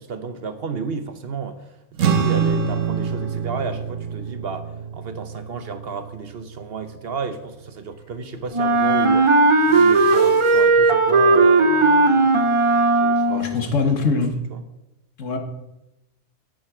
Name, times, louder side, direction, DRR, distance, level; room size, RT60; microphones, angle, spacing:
voice 1, 0.0-1.6 2.0-4.6 4.9-9.4 9.7-14.2 14.5-14.6, right 5 dB, 55° right, 10 dB, 0.9 m, -32 dB
sound 1, 2.0-8.6, right 6 dB, 75° right, 1.4 m, -27 dB
Wind instrument woodwind instrument, 8.5-13.6, right 3 dB, 35° right, 0.5 m, -16 dB
sound 2, 9.4-10.7, left 1 dB, 40° left, 4.4 m, -42 dB
voice 2, 13.3-14.4 15.2-15.4, left 4 dB, 75° left, 4 dB, 1.7 m, -22 dB
9.2 x 8.9 x 4.9 m, 0.93 s
omnidirectional pair, 1.3 m